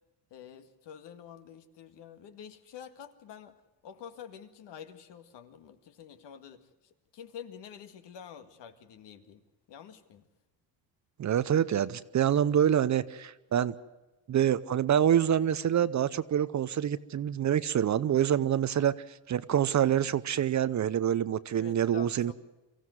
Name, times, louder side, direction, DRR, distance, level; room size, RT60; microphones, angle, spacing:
voice 1, 0.3-3.5 3.8-10.3 21.5-22.3, left 8 dB, 65° left, 2.0 m, -48 dB
voice 2, 11.2-13.8 14.3-22.3, right 10 dB, 40° right, 0.7 m, -26 dB
24.0 x 15.5 x 7.9 m
cardioid pair, 115°, 45 cm